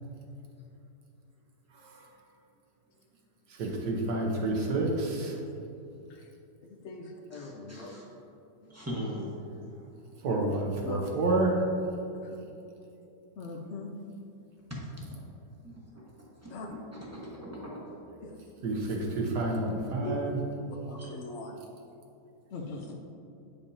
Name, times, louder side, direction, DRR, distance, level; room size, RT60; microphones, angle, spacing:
voice 1, 3.6-5.4 10.2-11.6 18.6-20.4, right 2 dB, 75° right, 0 dB, 1.5 m, -29 dB
voice 2, 6.7-8.0 8.6-8.8 10.2-10.5 10.8-11.1 12.3-12.4 13.4-13.9 16.5-16.7 18.2-18.3 20.0-20.2 20.9-21.5 22.5-22.9, left 3 dB, 85° left, 1 dB, 0.6 m, -40 dB
voice 3, 7.3-8.0 8.7-9.3 9.6-9.7 15.6-16.0 16.4-17.9 20.9-21.1, equal, 15° right, -5 dB, 0.7 m, -41 dB
8.4 x 5.3 x 2.7 m, 2.8 s
omnidirectional pair, 1.9 m